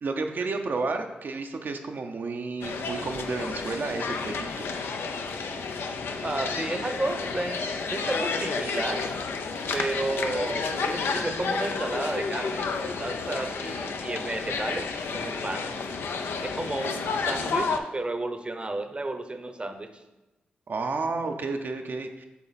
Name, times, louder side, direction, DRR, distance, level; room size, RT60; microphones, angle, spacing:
voice 1, 0.0-4.7 20.7-22.3, right 3 dB, 60° right, 5 dB, 0.6 m, -31 dB
sound 1, 2.6-17.8, left 4 dB, 80° left, 0.5 m, -31 dB
voice 2, 6.2-9.1 9.7-14.9 15.1-15.7 16.4-20.0, right 2 dB, 30° right, 7 dB, 0.7 m, -32 dB
7.1 x 3.8 x 4.1 m, 1.0 s
cardioid pair, 50°, 4 cm